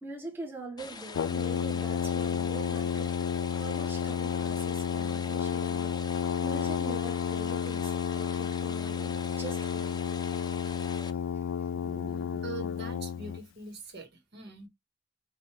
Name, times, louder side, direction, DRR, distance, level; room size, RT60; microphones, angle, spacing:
voice 1, 0.0-3.1 3.5-5.9 6.4-10.0 11.3-12.4, right 2 dB, 10° right, 1.5 m, -44 dB
sound 1, 0.8-11.1, left 4 dB, 20° left, 0.5 m, -44 dB
Brass instrument, 1.1-13.4, left 7 dB, 75° left, 0.3 m, -31 dB
voice 2, 12.4-14.7, right 3 dB, 60° right, 1.6 m, -42 dB
5.2 x 2.7 x 3.3 m
head